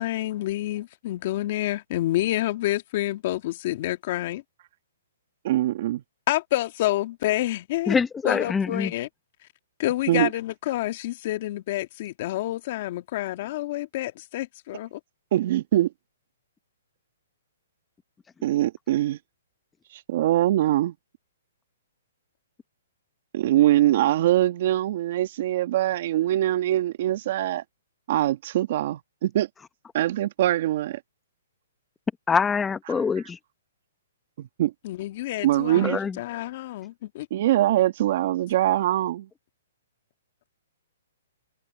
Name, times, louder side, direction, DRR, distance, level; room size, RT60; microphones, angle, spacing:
voice 1, 0.0-4.4 6.3-8.0 8.2-9.1 9.8-15.0 34.8-35.9 36.2-37.3, left 15 dB, 45° left, 1.6 m, -28 dB
voice 2, 5.4-6.0 10.1-10.3 15.3-15.9 18.4-19.2 19.9-20.9 23.3-27.6 28.1-29.5 29.9-31.0 32.9-33.0 34.4-34.7 35.4-36.0 37.3-39.3, right 13 dB, 50° right, 1.7 m, -23 dB
voice 3, 7.9-8.9 32.3-33.4 35.8-36.2, left 5 dB, 10° left, 1.0 m, -24 dB
hypercardioid pair, 145°, 0 cm